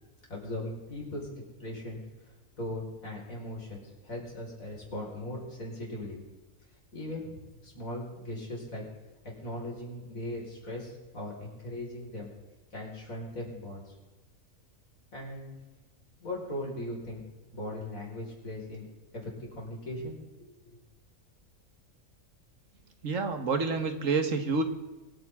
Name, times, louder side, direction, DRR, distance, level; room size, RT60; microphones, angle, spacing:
voice 1, 0.3-1.3 1.6-6.2 6.9-8.8 9.2-12.3 12.7-14.0 15.1-15.6 16.2-17.2 17.5-18.9 19.1-20.5, left 1 dB, 85° left, -3 dB, 5.3 m, -39 dB
voice 2, 23.0-24.6, right 4 dB, 70° right, 7 dB, 1.8 m, -28 dB
25.0 x 9.2 x 3.7 m, 1.2 s
omnidirectional pair, 1.4 m